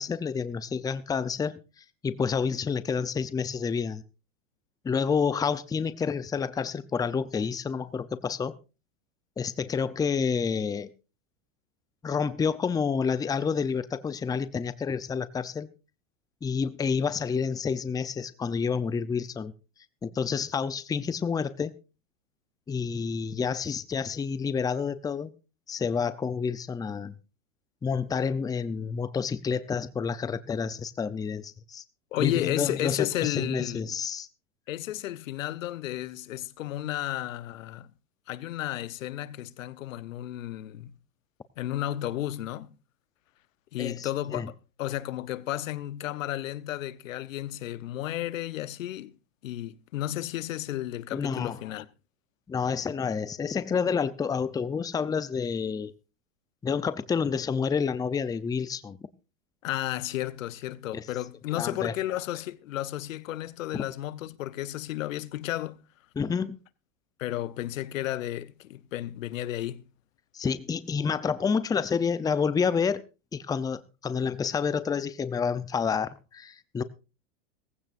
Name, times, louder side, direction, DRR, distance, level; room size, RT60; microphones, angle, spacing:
voice 1, 0.0-1.5 2.0-4.0 4.8-8.6 9.4-10.9 12.0-15.7 16.4-19.5 20.0-21.7 22.7-25.3 25.7-27.1 27.8-31.8 32.2-34.3 43.8-44.5 51.1-51.6 52.5-55.9 56.6-59.0 60.9-61.0 61.5-61.9 63.7-63.8 66.2-66.6 70.3-73.0 73.3-76.8, left 6 dB, 10° left, 0.6 m, -29 dB
voice 2, 32.1-33.9 34.7-37.9 38.3-40.9 41.6-42.7 43.7-44.5 44.8-49.1 49.4-51.9 59.6-65.8 67.2-69.8, left 14 dB, 85° left, 0.9 m, -33 dB
18.0 x 15.5 x 2.6 m
hypercardioid pair, 120°, 38 cm